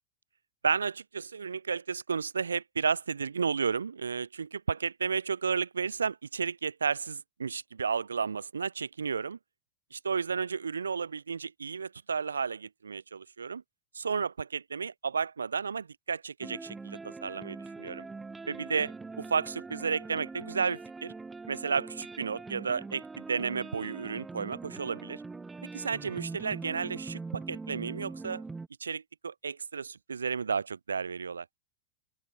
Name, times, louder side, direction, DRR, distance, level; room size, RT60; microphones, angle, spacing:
voice 1, 0.6-9.4 9.9-13.6 13.9-18.1 18.5-21.1 21.5-25.2 25.7-28.4 28.8-31.4, right 5 dB, 75° right, 0.8 m, -32 dB
sound 1, 16.4-28.7, right 3 dB, 10° right, 0.9 m, -43 dB
open air
figure-of-eight pair, 90°, 0 cm